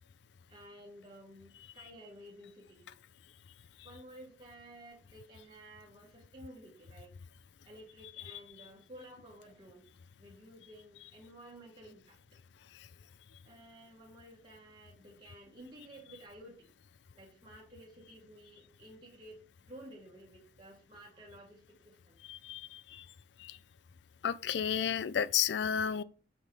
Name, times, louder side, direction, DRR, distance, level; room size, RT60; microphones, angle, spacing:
voice 1, 0.5-2.9 3.8-7.1 7.7-9.9 10.2-12.2 13.5-16.7 17.1-19.4 19.7-22.2, right 1 dB, 25° right, 1.9 m, -53 dB
voice 2, 22.3-23.0 23.4-23.6 24.2-26.0, left 8 dB, 70° left, 0.4 m, -32 dB
6.1 x 5.4 x 4.8 m
head